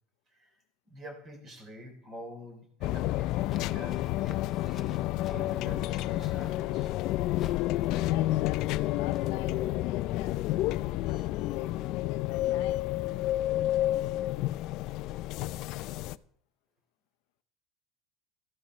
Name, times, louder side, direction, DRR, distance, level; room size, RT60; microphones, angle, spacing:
voice 1, 0.9-5.0 5.3-7.0, equal, 30° right, 3 dB, 3.3 m, -47 dB
sound 1, 2.8-16.2, left 15 dB, 55° left, 0.4 m, -30 dB
sound 2, 3.3-9.3, left 8 dB, 35° left, 0.8 m, -52 dB
voice 2, 8.0-12.9, left 16 dB, 80° left, 12 dB, 0.7 m, -44 dB
13.0 x 11.5 x 3.1 m, 0.64 s
cardioid pair, 140°, 0 cm